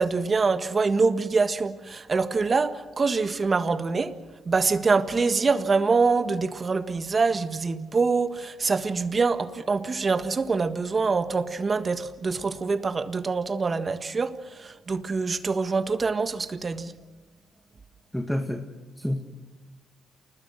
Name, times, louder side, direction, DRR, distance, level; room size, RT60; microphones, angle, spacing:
voice 1, 0.0-4.2 4.4-16.9, right 4 dB, 35° right, 1.6 m, -25 dB
voice 2, 18.1-18.6 19.0-19.2, left 1 dB, 5° left, 2.1 m, -28 dB
29.0 x 20.5 x 6.3 m
cardioid pair, 90°, 0 cm